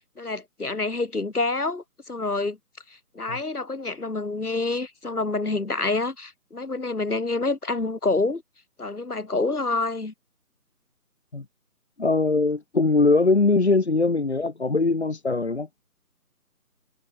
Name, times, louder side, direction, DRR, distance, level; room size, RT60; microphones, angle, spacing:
voice 1, 0.2-2.6 3.1-8.4 8.8-10.1, left 3 dB, 70° left, 6.7 m, -27 dB
voice 2, 12.0-15.7, left 3 dB, 45° left, 2.3 m, -21 dB
figure-of-eight pair, 180°, 47 cm